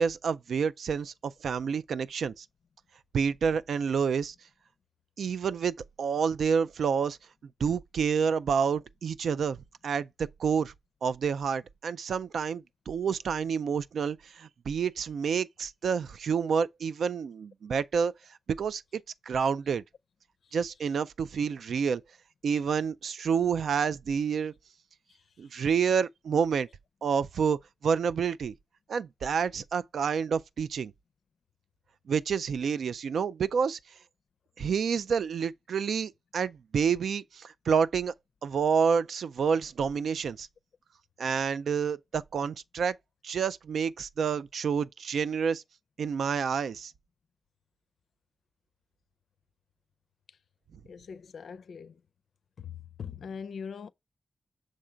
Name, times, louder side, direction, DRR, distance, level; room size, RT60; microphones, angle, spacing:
voice 1, 0.0-2.5 3.1-4.3 5.2-7.2 7.6-10.1 10.4-10.7 11.0-18.1 18.6-19.0 19.3-19.8 20.5-22.0 22.4-24.5 25.4-26.7 27.0-28.5 28.9-30.9 32.1-33.8 34.6-38.1 38.4-40.5 41.2-42.9 43.2-45.6 46.0-46.9, right 6 dB, 90° right, 0.3 m, -28 dB
voice 2, 50.8-52.0 52.6-53.9, left 6 dB, 80° left, 0.4 m, -41 dB
6.3 x 3.8 x 4.4 m
cardioid pair, 80°, 0 cm